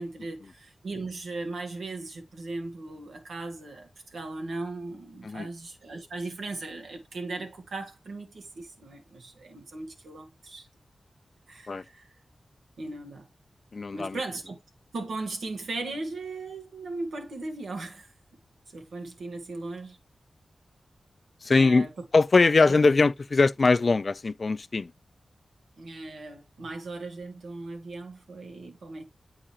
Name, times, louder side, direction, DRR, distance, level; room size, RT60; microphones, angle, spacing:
voice 1, 0.0-10.7 11.5-12.1 12.8-13.3 13.9-14.6 14.9-18.1 18.7-20.0 21.5-22.0 22.6-22.7 25.8-29.0, right 2 dB, 90° right, 1.3 m, -38 dB
voice 2, 13.7-14.2 21.4-21.9 22.1-24.9, left 3 dB, 55° left, 0.3 m, -21 dB
7.8 x 4.9 x 2.9 m
cardioid pair, 55°, 0 cm